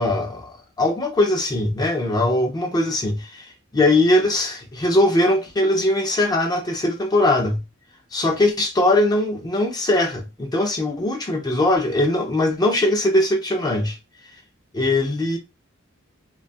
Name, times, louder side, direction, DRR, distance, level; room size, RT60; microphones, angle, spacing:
voice 1, 0.0-7.6 8.1-14.0 14.7-15.4, left 1 dB, 20° left, 0.4 m, -21 dB
2.6 x 2.3 x 2.6 m
head